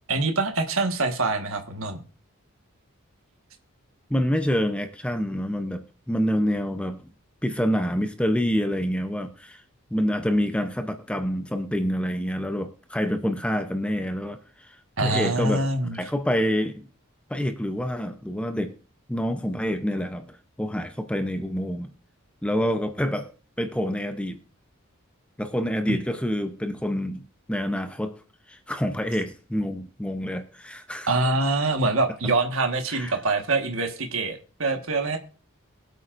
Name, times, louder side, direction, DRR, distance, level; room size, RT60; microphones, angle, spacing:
voice 1, 0.1-2.0 15.0-16.0 25.9-26.0 31.1-35.2, right 3 dB, 65° right, 1.5 m, -25 dB
voice 2, 4.1-7.0 7.4-9.6 9.9-15.7 15.9-16.9 17.3-18.7 19.1-21.9 22.4-23.3 23.6-24.4 25.4-27.2 27.5-28.2 28.5-31.1 32.9-33.2, equal, 5° left, 0.7 m, -27 dB
23.0 x 8.3 x 2.6 m
head